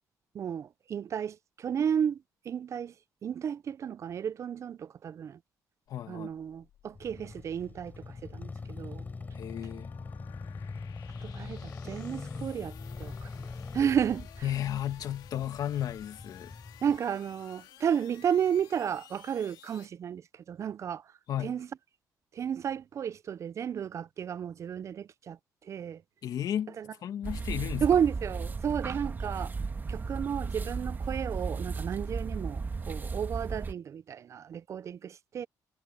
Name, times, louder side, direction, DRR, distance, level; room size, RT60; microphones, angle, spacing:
voice 1, 0.3-2.9 3.2-5.4 6.1-9.0 11.2-13.3 13.7-14.3 16.8-21.0 21.4-21.7 22.3-26.0 26.8-26.9 27.8-29.5 29.9-35.5, right 8 dB, 45° right, 0.4 m, -32 dB
sound 1, 5.9-19.9, left 12 dB, 85° left, 2.5 m, -55 dB
voice 2, 5.9-6.3 9.3-9.9 14.4-16.5 21.3-21.6 26.2-27.9, left 10 dB, 65° left, 2.0 m, -34 dB
sound 2, 6.9-17.0, left 4 dB, 25° left, 5.2 m, -42 dB
sound 3, 27.2-33.7, right 4 dB, 25° right, 1.6 m, -35 dB
cardioid pair, 120°, 7 cm